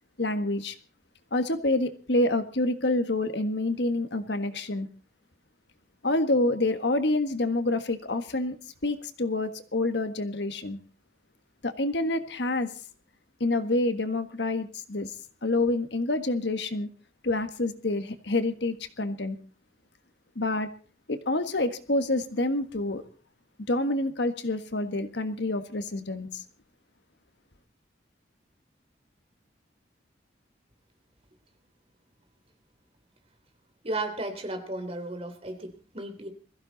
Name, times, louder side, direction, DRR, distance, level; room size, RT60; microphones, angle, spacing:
voice 1, 0.2-0.7 1.3-4.9 6.0-8.6 8.8-10.8 11.6-12.7 13.4-15.1 15.4-16.9 17.2-19.4 20.3-20.7 21.1-23.0 23.7-26.4, left 2 dB, 70° left, 9 dB, 1.6 m, -27 dB
voice 2, 33.8-36.3, right 2 dB, 35° right, 6 dB, 3.3 m, -34 dB
22.0 x 15.0 x 4.1 m, 0.39 s
head